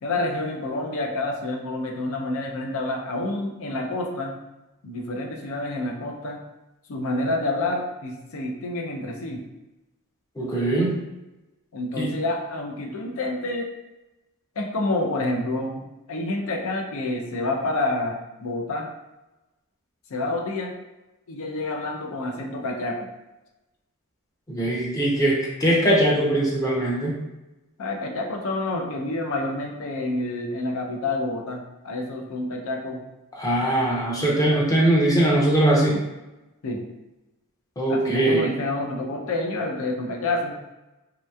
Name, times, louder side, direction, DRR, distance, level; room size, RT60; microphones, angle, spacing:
voice 1, 0.0-4.4 4.8-6.4 6.9-9.4 11.7-13.7 14.6-15.8 16.1-18.9 20.1-20.7 21.3-23.0 27.8-33.0 36.6-36.8 37.9-40.6, left 2 dB, 65° left, 2 dB, 0.5 m, -28 dB
voice 2, 10.4-11.0 12.0-12.1 24.5-27.2 33.4-36.0 37.8-38.5, right 1 dB, 15° left, -4 dB, 0.6 m, -21 dB
3.2 x 2.9 x 2.3 m, 1.0 s
head